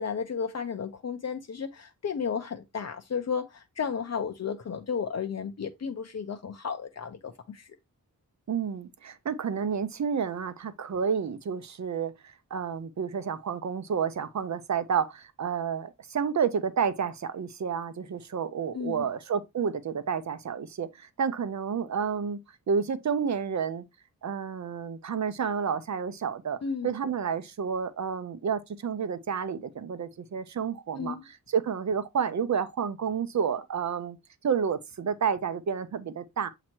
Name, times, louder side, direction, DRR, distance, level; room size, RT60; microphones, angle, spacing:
voice 1, 0.0-7.7 18.7-19.1 26.6-26.9 31.0-31.2, left 6 dB, 50° left, 0.6 m, -33 dB
voice 2, 8.5-22.4 22.7-23.8 24.2-34.2 34.4-36.5, right 6 dB, 55° right, 0.7 m, -30 dB
7.5 x 2.9 x 4.4 m
wide cardioid pair, 160°, 33 cm